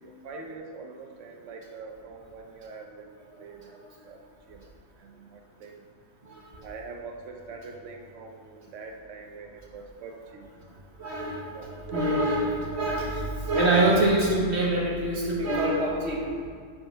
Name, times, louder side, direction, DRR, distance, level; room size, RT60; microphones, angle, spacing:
voice 1, 0.0-3.1 3.4-3.8 4.0-4.2 4.5-4.7 5.0-5.8 6.6-10.5 11.5-11.7, right 4 dB, 75° right, 3 dB, 1.1 m, -43 dB
voice 2, 6.2-6.6 11.0-16.3, right 1 dB, 55° right, -3 dB, 1.8 m, -25 dB
9.2 x 5.4 x 5.6 m, 2.2 s
omnidirectional pair, 1.3 m